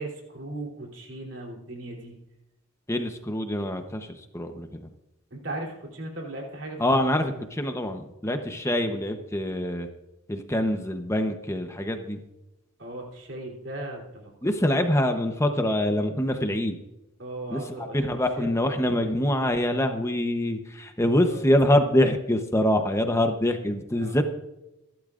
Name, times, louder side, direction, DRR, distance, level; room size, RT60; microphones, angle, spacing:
voice 1, 0.0-2.2 5.3-6.8 7.2-7.4 12.8-14.9 17.2-18.1 18.4-18.5 18.8-19.1 21.3-21.4 24.0-24.2, right 1 dB, 55° right, 0 dB, 3.4 m, -37 dB
voice 2, 2.9-4.9 6.8-9.9 10.3-12.2 14.4-16.8 17.5-24.2, left 1 dB, 15° left, 6 dB, 0.9 m, -25 dB
23.0 x 12.0 x 2.5 m, 0.93 s
head